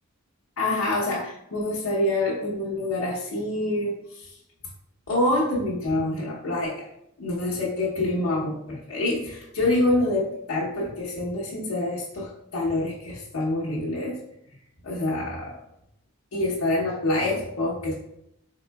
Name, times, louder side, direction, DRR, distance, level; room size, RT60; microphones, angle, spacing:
voice 1, 0.6-4.3 5.1-6.9 7.2-14.2 14.8-15.5 16.3-17.9, left 2 dB, 85° left, -6 dB, 0.8 m, -26 dB
3.6 x 3.6 x 2.2 m, 0.79 s
head